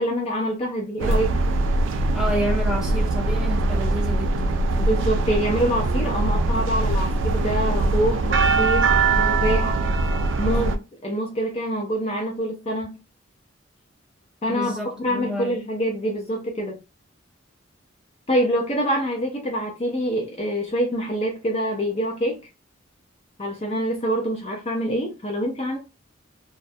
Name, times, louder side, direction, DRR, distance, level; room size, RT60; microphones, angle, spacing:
voice 1, 0.0-1.4 4.8-8.9 9.2-9.7 10.4-13.0 14.4-14.7 15.0-16.8 18.3-22.4 23.4-25.8, equal, 30° left, 0.5 m, -25 dB
sound 1, 1.0-10.8, right 2 dB, 70° right, 0.3 m, -22 dB
voice 2, 2.1-4.5 14.5-15.5, left 1 dB, 5° right, 0.9 m, -29 dB
2.3 x 2.1 x 2.6 m
head